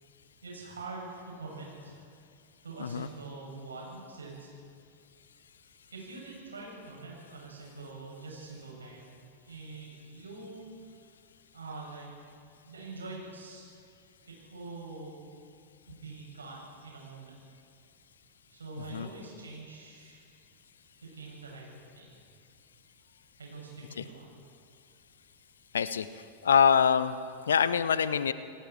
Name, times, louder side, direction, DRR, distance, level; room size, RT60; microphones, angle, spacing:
voice 1, 0.4-2.1 2.6-4.5 5.9-9.2 9.4-11.0 11.5-12.1 12.6-13.8 14.2-15.2 15.9-17.3 18.5-20.2 21.0-21.7 22.0-22.3 23.4-24.3, right 3 dB, 75° right, -3 dB, 7.6 m, -44 dB
voice 2, 25.7-26.1 26.4-27.1 27.5-28.3, left 7 dB, 65° left, 15 dB, 0.8 m, -24 dB
29.5 x 19.0 x 4.6 m, 2.3 s
figure-of-eight pair, 90°, 0 cm